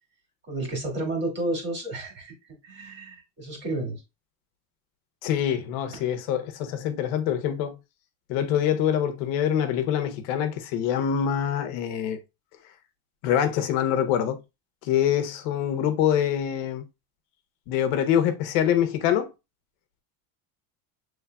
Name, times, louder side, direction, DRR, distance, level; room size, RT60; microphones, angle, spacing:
voice 1, 0.5-2.3 2.6-4.0 5.9-6.0, right 2 dB, 25° right, 2.1 m, -31 dB
voice 2, 5.2-7.8 8.3-12.2 13.2-14.4 14.9-16.8 17.7-19.3, left 9 dB, 75° left, 0.9 m, -25 dB
7.1 x 3.3 x 2.2 m
cardioid pair, 160°, 39 cm